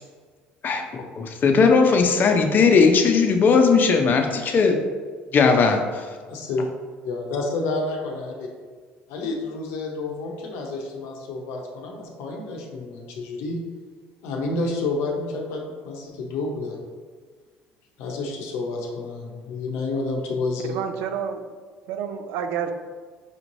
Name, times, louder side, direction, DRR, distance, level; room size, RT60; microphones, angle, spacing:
voice 1, 0.6-4.8 5.3-6.0, left 5 dB, 45° left, 4 dB, 0.6 m, -18 dB
voice 2, 6.3-6.7 7.0-8.5 9.1-13.6 14.2-16.8 18.0-20.7, left 3 dB, 80° left, 1 dB, 0.7 m, -29 dB
voice 3, 20.7-21.4 21.9-22.7, right 7 dB, 80° right, 7 dB, 0.4 m, -29 dB
4.9 x 3.1 x 2.6 m, 1.5 s
supercardioid pair, 85°, 4 cm